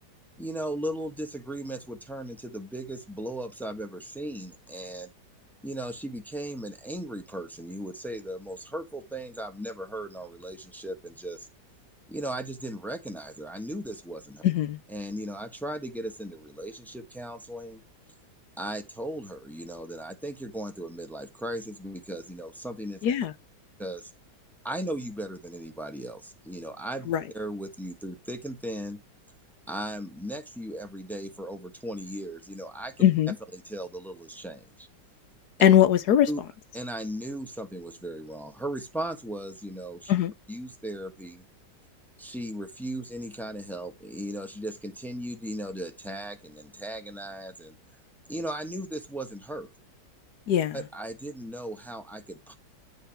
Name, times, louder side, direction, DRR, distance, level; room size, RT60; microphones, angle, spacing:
voice 1, 0.4-5.1 5.6-11.5 12.1-14.4 14.9-17.8 18.6-23.1 23.8-24.1 24.6-29.0 29.7-32.9 33.5-34.9 36.3-36.4 36.7-40.1 40.5-41.4 42.2-47.8 48.3-49.7 50.7-52.5, right 1 dB, ahead, 1.0 m, -37 dB
voice 2, 14.4-14.8 23.0-23.3 27.1-27.2 33.0-33.3 35.6-36.3 40.1-40.3 50.5-50.8, left 10 dB, 70° left, 1.3 m, -20 dB
9.2 x 3.4 x 5.8 m
omnidirectional pair, 1.9 m